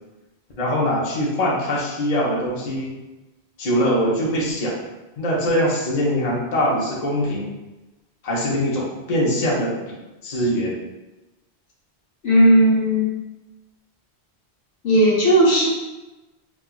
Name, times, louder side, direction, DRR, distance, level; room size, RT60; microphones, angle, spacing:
voice 1, 0.6-2.9 3.6-4.7 5.2-7.5 8.2-9.7 10.2-10.7, equal, 40° left, -5 dB, 0.8 m, -22 dB
voice 2, 12.2-13.1 14.8-15.7, right 1 dB, 75° left, -5 dB, 1.1 m, -15 dB
4.3 x 2.3 x 2.3 m, 1.1 s
omnidirectional pair, 1.1 m